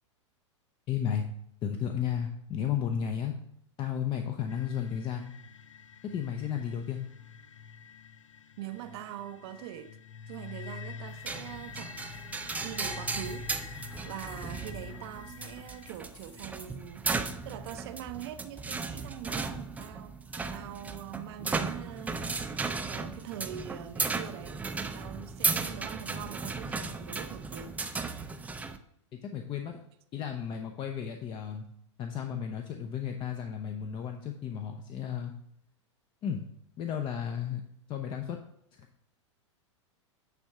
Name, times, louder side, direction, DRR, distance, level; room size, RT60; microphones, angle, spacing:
voice 1, 0.9-1.2 1.6-3.3 3.8-5.3 6.1-7.1 29.2-29.8 30.1-31.6 32.0-35.3 36.2-36.4 36.8-37.6 37.9-38.4, left 8 dB, 30° left, 0.7 m, -33 dB
sound 1, 4.5-15.9, left 6 dB, 85° left, 0.5 m, -46 dB
voice 2, 8.6-10.0 10.3-12.1 12.6-17.1 17.4-27.8, right 11 dB, 55° right, 0.6 m, -43 dB
sound 2, 11.3-28.8, right 4 dB, 10° right, 0.5 m, -36 dB
sound 3, 13.7-14.9 15.1-16.9, left 3 dB, 70° left, 3.1 m, -58 dB
9.3 x 3.6 x 5.6 m
hypercardioid pair, 100°, 16 cm